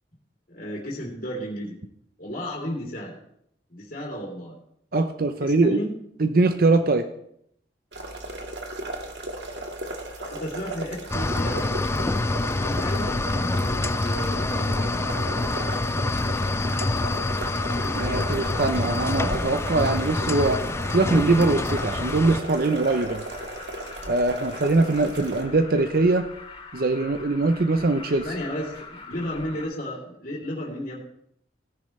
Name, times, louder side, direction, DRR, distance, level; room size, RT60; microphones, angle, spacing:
voice 1, 0.5-1.8 2.2-3.2 3.7-4.6 5.4-5.9 10.2-11.7 12.5-13.3 13.5-15.0 28.2-31.0, equal, 50° left, -3 dB, 3.0 m, -33 dB
voice 2, 4.9-5.8 6.2-7.0 17.9-20.6 20.9-23.2 24.1-26.3 26.7-28.2, right 3 dB, 55° right, 8 dB, 0.6 m, -22 dB
sound 1, 7.9-25.4, right 1 dB, 80° right, 1.8 m, -36 dB
sound 2, 11.1-22.4, left 2 dB, 15° left, 0.3 m, -26 dB
Alarm, 18.1-29.6, left 3 dB, 30° left, 3.1 m, -42 dB
17.0 x 10.5 x 3.2 m, 0.72 s
head